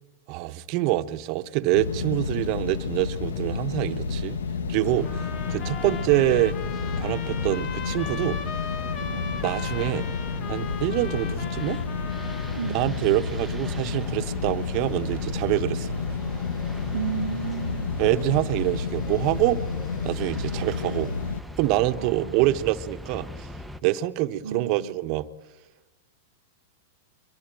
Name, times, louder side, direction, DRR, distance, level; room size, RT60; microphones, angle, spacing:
voice 1, 0.3-4.4 4.7-6.5 7.0-8.4 9.4-10.1 10.5-11.8 12.6-16.0 18.0-19.6 20.0-21.1 21.6-23.5 23.8-25.3, right 16 dB, 50° right, 1.1 m, -25 dB
sound 1, 1.7-21.4, left 5 dB, 75° left, 1.3 m, -31 dB
sound 2, 4.8-23.8, equal, ahead, 1.0 m, -40 dB
sound 3, 5.0-12.8, left 7 dB, 40° left, 1.7 m, -38 dB
voice 2, 5.8-6.3 9.1-9.4 12.5-13.1 16.9-18.0 20.6-20.9 22.0-22.6 24.4-25.0, right 7 dB, 80° right, 0.9 m, -35 dB
23.5 x 22.0 x 9.0 m
hypercardioid pair, 105°, 0 cm